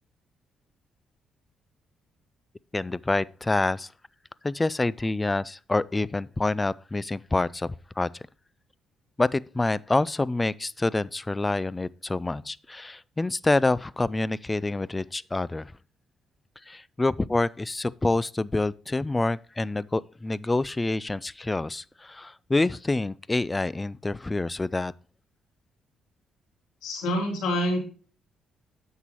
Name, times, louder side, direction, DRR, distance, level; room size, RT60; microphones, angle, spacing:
voice 1, 2.7-3.9 4.4-8.2 9.2-15.7 16.7-24.9, left 2 dB, 20° left, 0.3 m, -27 dB
voice 2, 26.8-27.8, equal, 90° left, 3.3 m, -26 dB
10.0 x 7.3 x 3.0 m
cardioid pair, 90°, 0 cm